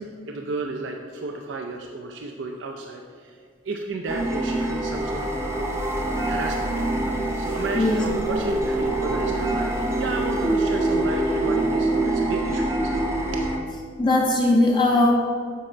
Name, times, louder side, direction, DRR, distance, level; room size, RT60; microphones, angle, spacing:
voice 1, 0.3-3.4 3.6-6.9 7.4-13.0 13.3-13.5, right 3 dB, 75° right, 2 dB, 0.5 m, -33 dB
sound 1, 4.1-13.6, right 2 dB, 15° right, 0.7 m, -25 dB
voice 2, 14.0-15.1, left 2 dB, 25° left, 0 dB, 0.6 m, -19 dB
7.4 x 5.0 x 4.4 m, 2.1 s
head